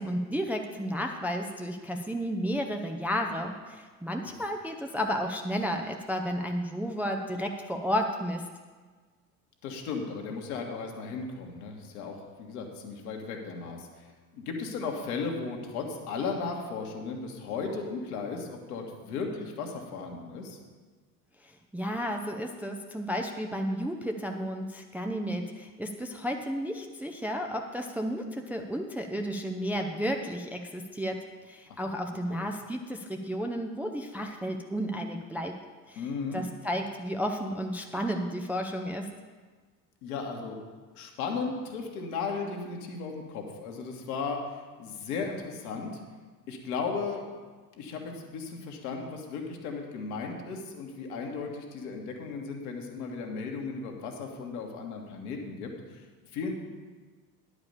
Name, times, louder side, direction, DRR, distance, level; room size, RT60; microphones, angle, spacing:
voice 1, 0.0-8.5 21.4-31.2 31.4-35.6 35.9-36.1 36.3-39.1, equal, 5° right, 3 dB, 0.5 m, -32 dB
voice 2, 9.6-20.6 31.7-31.8 32.3-32.4 36.0-36.4 40.0-40.6 40.9-45.9 46.5-47.2 47.8-56.0 56.3-56.5, left 4 dB, 65° left, 2 dB, 1.7 m, -36 dB
10.5 x 5.0 x 6.8 m, 1.4 s
figure-of-eight pair, 65°, 48 cm